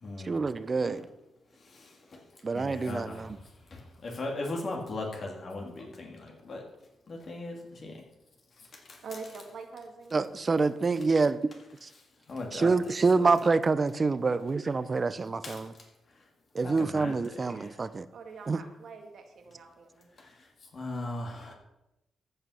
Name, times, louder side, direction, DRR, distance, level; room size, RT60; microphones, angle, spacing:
voice 1, 0.2-1.0 2.4-3.4 10.1-11.4 12.5-15.7 16.5-18.1 18.5-18.6, right 4 dB, 30° right, 14 dB, 0.6 m, -26 dB
voice 2, 1.7-2.2 2.5-3.2 3.7-6.6 7.1-7.9 8.9-9.0 12.3-12.7 13.2-13.3 15.4-15.5 16.6-17.1 17.5-17.8 20.2-20.3 20.7-21.5, left 2 dB, 50° left, 1 dB, 2.3 m, -38 dB
voice 3, 9.0-10.2 12.5-12.7 18.1-20.1 21.5-21.6, right 4 dB, 65° right, 3 dB, 2.0 m, -45 dB
14.0 x 5.7 x 5.6 m, 0.89 s
cardioid pair, 105°, 0 cm